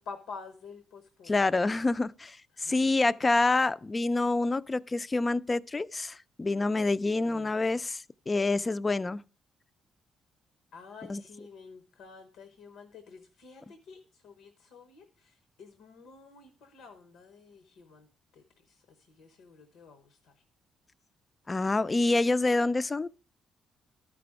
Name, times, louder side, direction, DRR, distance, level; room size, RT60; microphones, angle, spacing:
voice 1, 0.0-1.4 2.5-2.9 7.3-7.8 10.7-18.1 18.3-20.4, left 5 dB, 85° left, 0.9 m, -49 dB
voice 2, 1.3-9.2 11.1-11.2 21.5-23.1, left 3 dB, 25° left, 0.3 m, -27 dB
12.5 x 5.1 x 4.7 m
cardioid pair, 90°, 0 cm